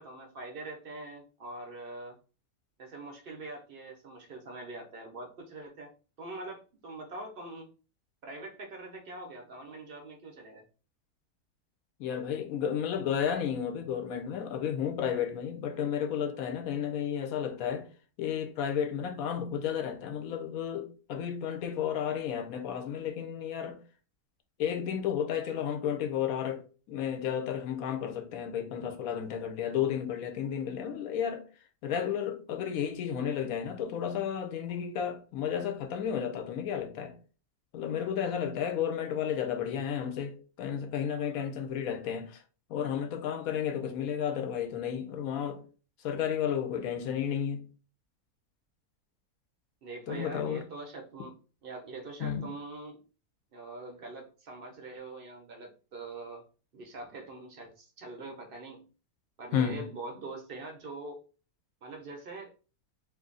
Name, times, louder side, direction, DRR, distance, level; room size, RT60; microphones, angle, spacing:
voice 1, 0.0-2.2 2.8-5.9 6.2-7.7 8.2-10.6 49.8-51.4 51.6-53.0 53.5-56.4 56.7-58.9 59.4-61.2 61.8-62.5, right 2 dB, 60° right, 0.6 m, -43 dB
voice 2, 12.0-17.9 18.2-23.8 24.6-31.4 31.8-37.1 37.7-42.4 42.7-45.6 46.0-47.6 50.1-50.6 52.2-52.4 59.5-59.8, left 8 dB, 70° left, 1.0 m, -32 dB
2.6 x 2.5 x 3.8 m
omnidirectional pair, 1.6 m